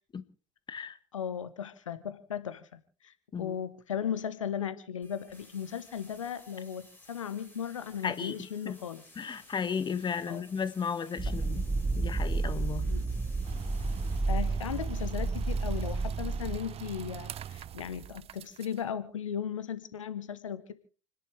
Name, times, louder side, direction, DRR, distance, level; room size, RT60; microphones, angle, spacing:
voice 1, 1.1-9.0 10.3-10.4 12.9-13.0 14.3-20.7, left 8 dB, 85° left, 1.1 m, -37 dB
sound 1, 5.0-16.1, left 1 dB, 10° left, 7.7 m, -57 dB
voice 2, 8.0-8.8 9.2-11.6 12.0-12.9, left 6 dB, 30° left, 1.5 m, -34 dB
sound 2, 11.2-16.6, right 3 dB, 15° right, 1.0 m, -31 dB
sound 3, 13.4-18.8, right 10 dB, 40° right, 0.7 m, -42 dB
29.5 x 10.5 x 3.4 m
hypercardioid pair, 70°, 16 cm